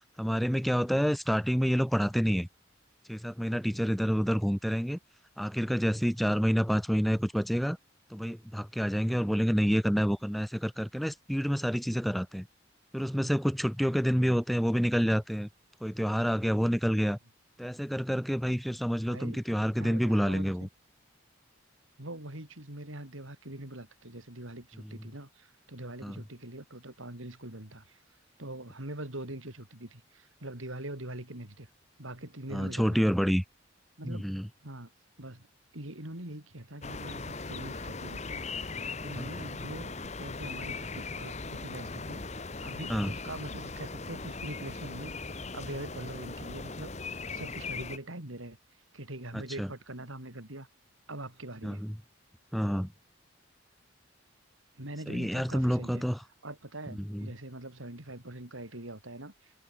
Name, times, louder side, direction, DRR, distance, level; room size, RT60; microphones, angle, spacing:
voice 1, 0.2-2.5 3.1-5.0 5.4-7.8 8.1-12.5 12.9-15.5 15.8-17.2 17.6-20.7 24.8-24.9 26.0-26.1 32.5-33.4 34.0-34.5 39.1-39.3 42.9-43.1 49.3-49.7 51.6-51.9 52.5-52.9 55.1-56.2 57.0-57.3, equal, ahead, 0.7 m, -28 dB
voice 2, 19.1-19.4 19.8-20.7 22.0-28.0 28.4-31.7 32.0-33.1 34.0-34.2 34.6-34.9 35.2-35.5 35.7-38.7 39.0-39.9 40.2-42.2 42.6-45.1 45.5-48.6 48.9-50.7 51.1-51.8 54.8-56.0 56.4-59.5, right 1 dB, 80° right, 4.9 m, -43 dB
sound 1, 36.8-48.0, left 3 dB, 35° left, 1.3 m, -39 dB
head